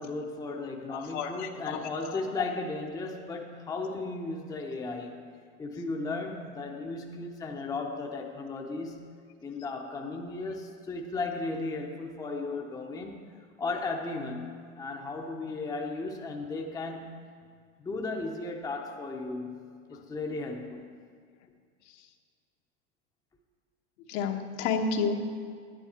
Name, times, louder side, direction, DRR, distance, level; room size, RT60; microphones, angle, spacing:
voice 1, 0.0-5.3 5.6-9.1 9.4-13.2 13.6-17.2 17.8-21.0, left 3 dB, 10° left, 1 dB, 0.7 m, -35 dB
voice 2, 0.9-2.5 21.8-22.1 24.1-25.1, left 5 dB, 70° left, 3 dB, 1.2 m, -32 dB
10.0 x 9.9 x 4.3 m, 2.1 s
supercardioid pair, 130°, 37 cm